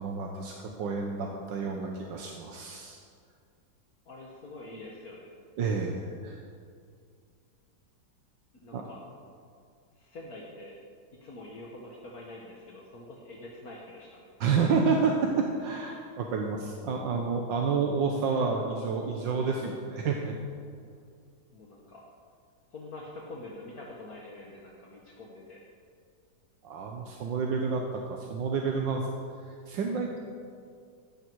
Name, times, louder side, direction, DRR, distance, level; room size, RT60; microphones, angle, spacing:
voice 1, 0.0-3.0 5.6-6.4 8.7-8.8 14.4-20.4 26.6-29.1 29.4-30.2, right 5 dB, 85° right, 1 dB, 1.8 m, -29 dB
voice 2, 4.1-5.3 8.6-9.0 10.0-10.8 11.2-14.3 21.5-22.0 22.7-25.6, left 2 dB, 55° left, -3 dB, 1.9 m, -45 dB
16.0 x 13.5 x 4.7 m, 2.3 s
omnidirectional pair, 1.9 m